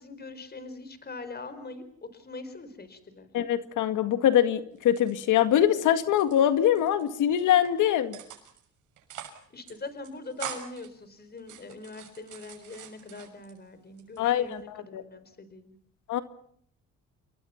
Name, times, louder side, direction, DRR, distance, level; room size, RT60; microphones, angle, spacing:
voice 1, 0.0-3.3 9.5-15.8, left 3 dB, 30° left, 11 dB, 4.6 m, -42 dB
voice 2, 3.3-8.2 14.2-15.0 16.1-16.2, left 10 dB, 85° left, 10 dB, 2.0 m, -23 dB
sound 1, 4.8-5.8 6.1-7.0 7.4-7.7 8.1-8.6 9.0-9.4 9.7-9.8 10.0-10.9 11.4-13.6 14.0-14.6, right 10 dB, 90° right, 6.4 m, -43 dB
30.0 x 22.5 x 5.9 m, 0.65 s
cardioid pair, 90°, 30 cm